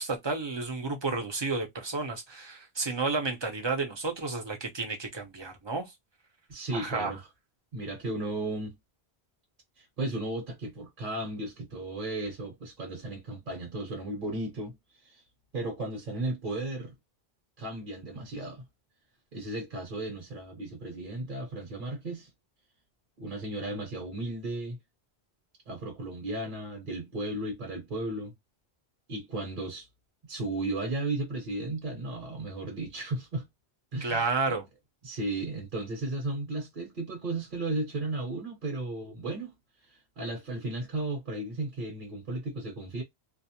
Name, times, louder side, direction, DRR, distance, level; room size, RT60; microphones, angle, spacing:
voice 1, 0.0-5.9 6.7-7.1 34.0-34.6, right 3 dB, 30° right, 0.6 m, -31 dB
voice 2, 6.5-7.2 7.7-8.7 9.8-15.2 15.5-16.9 17.6-18.6 19.3-22.3 23.2-24.8 25.7-28.3 29.1-29.9 30.2-33.5 33.9-34.6 35.0-39.5 39.8-43.0, right 2 dB, 55° right, 1.0 m, -35 dB
2.4 x 2.0 x 2.7 m
omnidirectional pair, 1.1 m